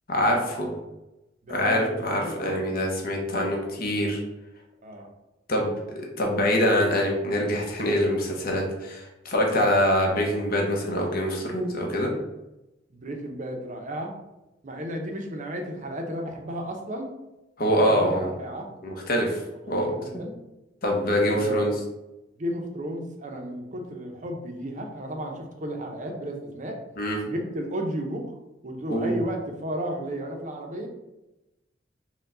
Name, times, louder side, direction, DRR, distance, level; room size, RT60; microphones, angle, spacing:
voice 1, 0.1-0.7 1.5-4.2 5.5-12.1 17.6-18.3 18.8-19.4 19.7-19.9 20.8-21.7 27.0-27.2 28.9-29.2, equal, 55° left, 0 dB, 0.9 m, -24 dB
voice 2, 1.4-2.8 4.8-5.1 12.9-14.1 14.6-17.1 17.7-18.7 19.7-20.4 21.3-21.8 22.4-26.8 27.2-28.3 28.6-30.9, equal, 45° right, 3 dB, 0.6 m, -33 dB
4.5 x 2.2 x 3.7 m, 0.97 s
head